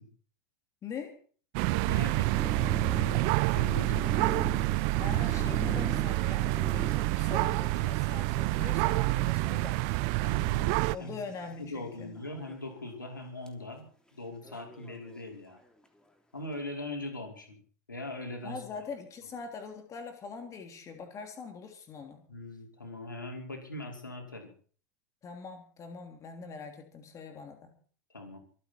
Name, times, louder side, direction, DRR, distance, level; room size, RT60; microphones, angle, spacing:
voice 1, 0.8-1.2 5.0-9.8 10.9-12.2 18.4-22.2 25.2-27.8, left 5 dB, 30° left, 6 dB, 3.1 m, -43 dB
sound 1, 1.5-10.9, right 22 dB, 50° right, 0.6 m, -28 dB
voice 2, 1.7-4.1 10.1-11.2 11.6-15.6 16.3-17.6 17.9-18.6 22.3-24.5 28.1-28.4, left 2 dB, 85° left, 2 dB, 5.3 m, -41 dB
sound 2, 1.9-11.4 12.2-12.7 13.1-13.2 13.5-13.6 14.4-15.6, left 1 dB, 5° left, 3.3 m, -43 dB
26.0 x 9.6 x 4.5 m, 0.44 s
figure-of-eight pair, 85°, 10 cm